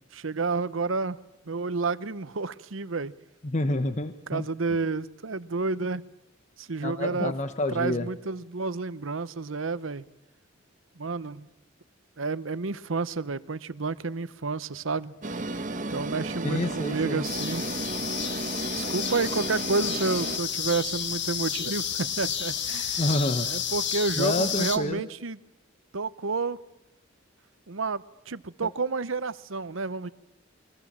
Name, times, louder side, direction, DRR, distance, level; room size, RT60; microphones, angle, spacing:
voice 1, 0.1-1.2 1.5-3.1 4.3-6.1 6.6-7.3 7.7-10.1 11.0-11.5 12.2-15.1 15.9-17.6 18.7-23.1 23.4-25.4 25.9-26.6 27.7-30.1, right 4 dB, 85° right, 16 dB, 0.9 m, -30 dB
voice 2, 3.4-4.5 6.8-8.1 16.4-17.2 23.0-23.5 24.2-25.0, left 1 dB, 35° left, 9 dB, 1.0 m, -28 dB
spaceship takeoff, 15.2-20.4, right 2 dB, 40° right, 1.3 m, -33 dB
sound 1, 17.2-24.8, left 8 dB, 60° left, 1.8 m, -31 dB
28.5 x 23.0 x 7.4 m, 0.94 s
head